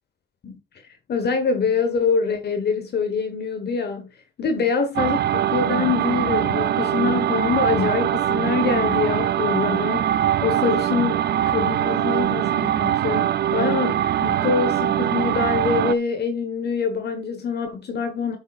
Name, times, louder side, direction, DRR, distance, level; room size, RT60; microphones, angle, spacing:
voice 1, 1.1-4.1 4.4-18.4, left 5 dB, 55° left, 1.3 m, -25 dB
sound 1, 5.0-16.0, right 11 dB, 55° right, 0.5 m, -22 dB
10.5 x 6.9 x 2.4 m
cardioid pair, 90°, 20 cm